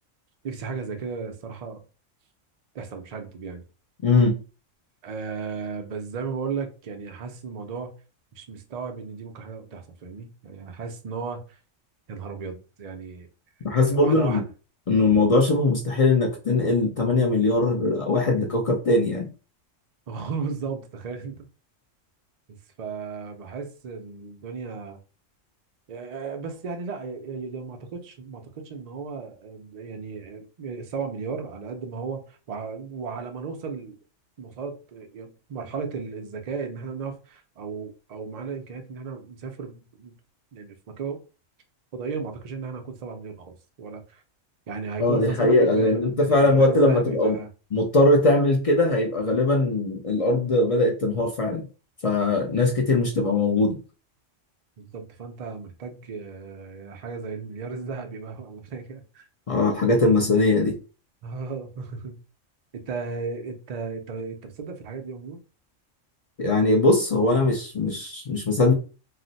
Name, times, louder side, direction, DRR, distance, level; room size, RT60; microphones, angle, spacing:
voice 1, 0.4-1.8 2.7-3.6 5.0-8.0 8.3-11.6 12.1-13.3 13.7-14.4 20.1-21.5 22.5-25.0 25.9-34.0 34.4-40.1 40.5-41.2 41.9-44.2 44.7-47.5 54.8-59.3 61.2-62.2 62.7-65.4, right 5 dB, 70° right, 0.3 m, -35 dB
voice 2, 4.0-4.4 13.6-14.4 14.9-19.3 45.0-47.4 47.7-51.6 52.0-53.8 59.5-60.8 66.4-68.7, left 2 dB, 60° left, 0.3 m, -21 dB
2.5 x 2.1 x 3.9 m
omnidirectional pair, 1.3 m